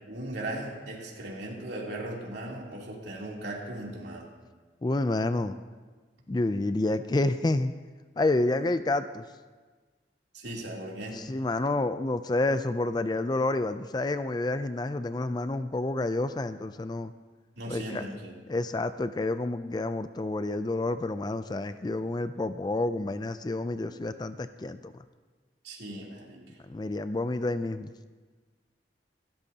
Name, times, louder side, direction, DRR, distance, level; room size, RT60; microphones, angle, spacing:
voice 1, 0.1-4.3 10.3-11.3 17.6-18.4 25.6-26.6, right 1 dB, 75° right, -3 dB, 3.1 m, -38 dB
voice 2, 4.8-5.6 6.3-7.7 8.2-9.2 11.1-17.1 17.7-18.0 18.5-24.9 26.7-27.9, left 2 dB, 25° left, 11 dB, 0.4 m, -29 dB
27.0 x 13.5 x 2.9 m, 1.4 s
head